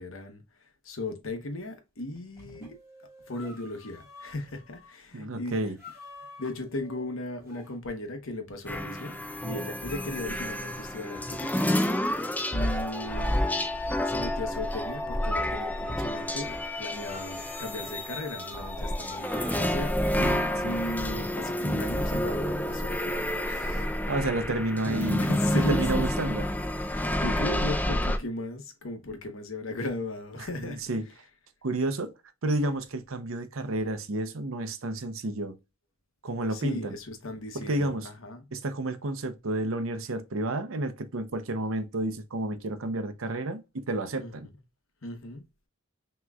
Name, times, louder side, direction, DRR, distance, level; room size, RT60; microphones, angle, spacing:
voice 1, 0.0-2.8 3.3-5.6 6.4-12.2 12.5-13.7 14.0-20.0 20.6-23.9 25.2-26.3 26.8-31.0 36.5-38.4 44.2-44.3 45.0-45.5, left 1 dB, 70° left, 1.0 m, -37 dB
sound 1, 2.0-4.9 5.8-7.8 8.9-11.1 12.9-15.0 15.5-16.3 17.1-19.9, left 1 dB, 10° right, 2.0 m, -48 dB
voice 2, 5.1-5.7 20.2-20.8 24.1-25.2 25.5-26.5 30.4-31.1 31.6-32.1 32.4-35.6 36.2-36.9 37.5-38.1 38.5-44.5, right 2 dB, 70° right, 0.7 m, -31 dB
sound 2, 8.7-28.2, left 1 dB, 10° left, 0.5 m, -29 dB
6.0 x 3.0 x 2.3 m
head